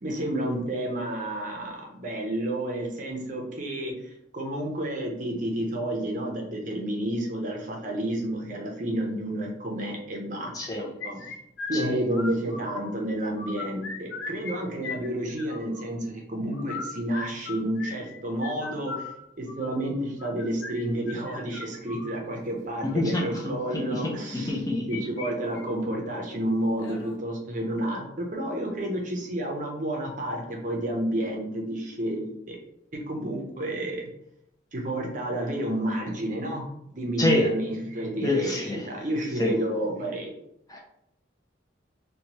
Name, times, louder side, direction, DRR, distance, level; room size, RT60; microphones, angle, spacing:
voice 1, 0.0-10.5 10.8-11.2 11.7-19.1 19.4-24.6 24.9-32.6 33.1-34.0 34.7-36.7 36.9-40.3, right 1 dB, 40° right, 0 dB, 0.6 m, -30 dB
voice 2, 10.5-10.9 11.7-11.8 22.8-25.0 37.2-37.5 38.2-38.9 39.4-39.5 40.7-40.8, left 2 dB, 20° left, -1 dB, 0.4 m, -27 dB
sound 1, 11.0-12.9 13.2-14.5 14.8-15.8 16.5-22.2 22.9-23.2 24.5-25.3 25.6-25.7 26.1-26.2 26.8-27.2, left 4 dB, 80° left, 0.5 m, -38 dB
2.9 x 2.2 x 2.8 m, 0.79 s
head